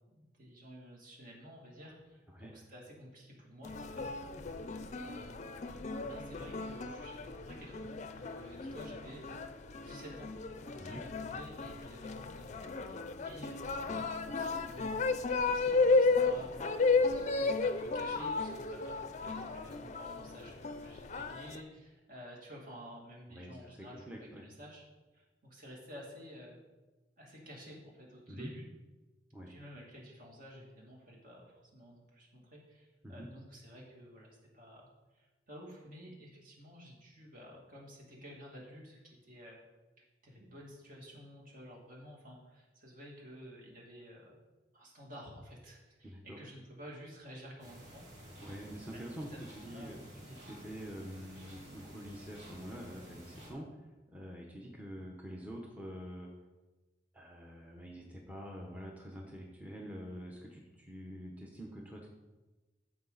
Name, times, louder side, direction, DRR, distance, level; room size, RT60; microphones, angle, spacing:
voice 1, 0.1-5.6 6.0-9.5 9.8-10.3 10.6-12.6 12.8-24.8 25.1-26.6 27.2-28.7 29.5-39.6 40.2-44.4 44.7-48.0 48.9-50.1, equal, 50° right, -2 dB, 2.4 m, -52 dB
sound 1, 3.6-21.6, left 3 dB, 40° left, 0.5 m, -34 dB
voice 2, 23.3-24.4 28.3-28.5 29.3-29.5 33.0-33.3 46.0-46.4 48.4-49.3 49.6-53.8 54.1-56.3 57.1-62.1, equal, 10° right, -1 dB, 0.8 m, -46 dB
sound 2, 47.6-53.5, right 1 dB, 85° right, 3.3 m, -52 dB
14.0 x 4.9 x 4.0 m, 1.2 s
head